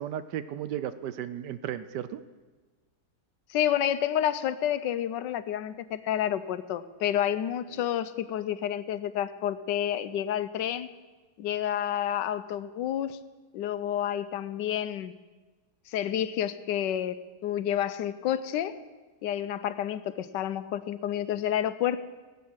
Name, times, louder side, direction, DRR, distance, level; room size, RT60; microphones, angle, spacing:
voice 1, 0.0-2.2 7.7-7.8, right 10 dB, 80° right, 13 dB, 1.2 m, -35 dB
voice 2, 3.5-10.9 11.4-13.2 13.5-15.1 15.9-18.8 19.2-22.0, left 10 dB, 90° left, 13 dB, 1.3 m, -29 dB
19.0 x 8.5 x 6.3 m, 1.3 s
omnidirectional pair, 1.9 m